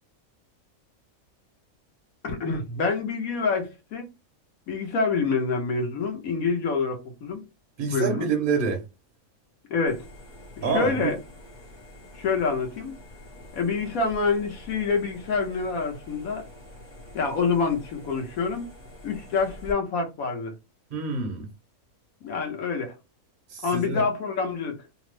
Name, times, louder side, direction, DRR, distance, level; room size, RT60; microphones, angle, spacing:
voice 1, 2.2-4.1 4.7-7.5 7.9-8.3 9.7-10.1 10.6-11.2 12.1-13.0 13.5-16.5 17.1-18.7 19.0-20.5 22.2-23.0 23.6-24.8, left 4 dB, 75° left, 1.2 m, -27 dB
voice 2, 7.8-8.8 10.6-11.1 20.9-21.5 23.5-24.0, right 4 dB, 55° right, 0.6 m, -27 dB
sound 1, 9.9-19.7, left 1 dB, 20° left, 0.8 m, -46 dB
3.0 x 2.0 x 3.1 m
omnidirectional pair, 1.5 m